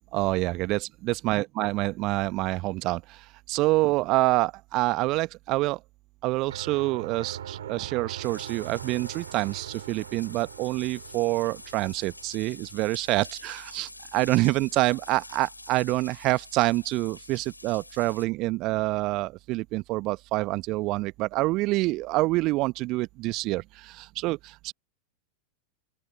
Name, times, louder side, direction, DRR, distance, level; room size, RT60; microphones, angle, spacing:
voice 1, 0.1-5.8 6.2-24.7, right 20 dB, 40° right, 1.2 m, -27 dB
sound 1, 6.5-13.2, right 9 dB, 65° right, 3.1 m, -42 dB
sound 2, 8.2-18.3, left 2 dB, 85° left, 4.7 m, -46 dB
open air
figure-of-eight pair, 90°, 0 cm